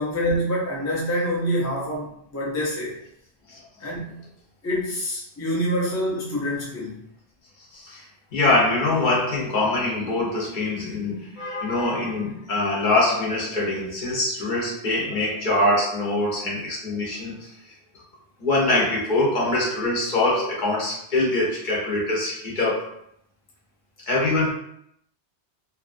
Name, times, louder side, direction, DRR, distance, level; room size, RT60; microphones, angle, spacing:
voice 1, 0.0-3.0 3.8-4.2 4.6-7.0, equal, 25° left, -5 dB, 0.4 m, -26 dB
voice 2, 7.7-8.1 8.3-17.5 18.4-22.9 24.1-24.5, left 2 dB, 50° left, -4 dB, 0.9 m, -23 dB
2.6 x 2.3 x 2.5 m, 0.72 s
omnidirectional pair, 1.1 m